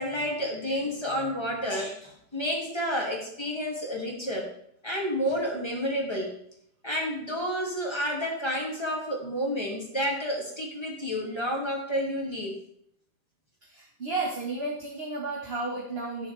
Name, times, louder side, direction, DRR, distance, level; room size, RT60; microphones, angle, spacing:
voice 1, 0.0-4.5 4.8-6.3 6.8-12.6, equal, 15° left, -2 dB, 2.6 m, -30 dB
voice 2, 13.6-16.3, right 3 dB, 35° right, -3 dB, 1.9 m, -33 dB
17.5 x 7.0 x 3.5 m, 0.70 s
omnidirectional pair, 2.0 m